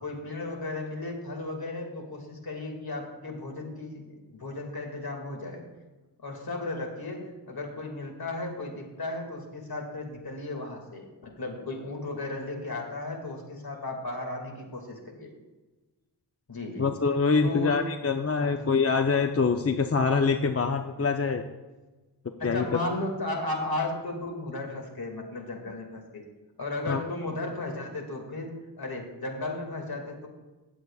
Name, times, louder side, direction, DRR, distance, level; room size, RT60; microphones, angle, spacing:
voice 1, 0.0-5.6 6.2-15.3 16.5-16.9 17.4-17.8 18.4-18.6 22.4-26.2 26.6-28.5 28.8-30.3, left 2 dB, 55° left, 2 dB, 2.2 m, -35 dB
voice 2, 16.8-21.4 22.4-22.6 26.9-27.0, left 4 dB, 35° left, 6 dB, 0.6 m, -25 dB
18.0 x 7.8 x 2.4 m, 1.2 s
cardioid pair, 60°, 42 cm